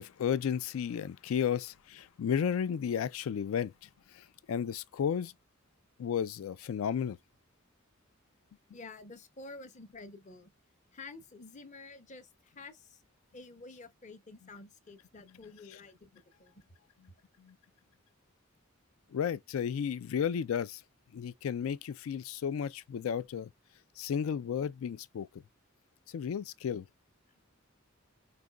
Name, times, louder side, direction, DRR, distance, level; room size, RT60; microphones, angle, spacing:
voice 1, 0.0-3.7 4.1-5.3 6.0-7.2 17.4-17.5 19.1-20.8 21.1-23.5 24.0-25.4 26.1-26.9, left 8 dB, 85° left, 0.3 m, -33 dB
voice 2, 8.7-10.5 10.9-13.0 13.3-16.9, left 3 dB, 35° left, 0.7 m, -50 dB
4.8 x 2.2 x 2.2 m
head